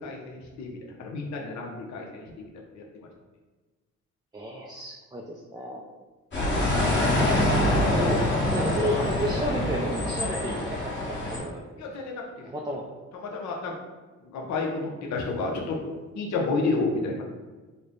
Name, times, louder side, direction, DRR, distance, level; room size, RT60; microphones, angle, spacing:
voice 1, 0.0-2.5 2.7-2.8 11.8-12.5 13.2-13.7 14.2-15.8 16.1-17.2, left 3 dB, 65° left, 0 dB, 0.7 m, -31 dB
voice 2, 4.3-5.8 7.3-8.2 8.5-11.8 12.5-12.9, equal, 15° right, -2 dB, 0.3 m, -33 dB
sound 1, 6.3-11.4, left 1 dB, 40° left, 1.3 m, -25 dB
3.3 x 2.1 x 3.8 m, 1.3 s
cardioid pair, 90°, 30 cm